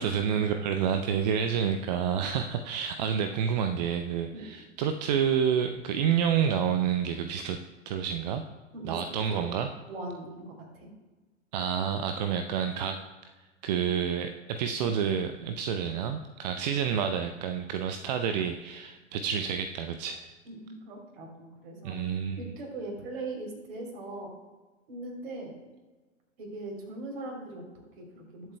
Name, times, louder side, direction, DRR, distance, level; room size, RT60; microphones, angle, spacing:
voice 1, 0.0-7.6 7.9-8.4 8.8-9.7 11.5-13.0 13.6-20.3 21.8-22.4, right 8 dB, 35° right, 7 dB, 0.5 m, -29 dB
voice 2, 9.9-10.9 20.4-22.0 22.3-24.3 24.9-25.5 26.4-28.6, right 2 dB, 50° right, 1 dB, 3.4 m, -40 dB
20.0 x 7.7 x 2.3 m, 1.3 s
figure-of-eight pair, 105°, 39 cm